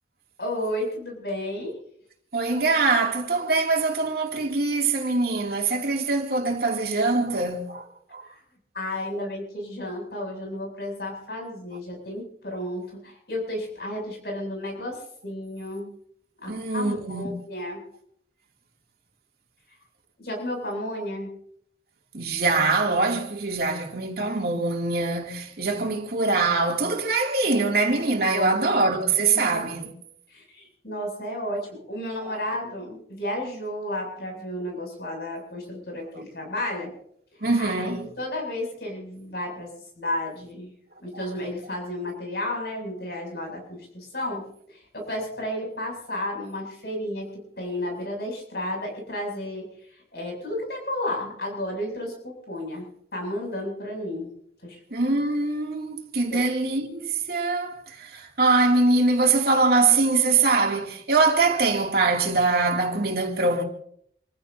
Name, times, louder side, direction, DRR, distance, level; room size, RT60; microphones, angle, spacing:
voice 1, 0.4-1.8 8.2-8.4 8.7-15.9 16.4-17.8 20.2-21.3 28.3-28.6 29.3-29.7 30.3-36.9 37.5-39.7 40.0-40.7 41.0-49.7 50.1-52.8 53.1-54.3 54.6-54.8 56.3-56.4, left 1 dB, 60° left, 7.9 m, -32 dB
voice 2, 2.3-8.2 16.5-17.3 22.1-29.9 37.4-38.1 54.9-63.6, right 3 dB, 55° right, 2.9 m, -23 dB
28.5 x 15.5 x 2.9 m
head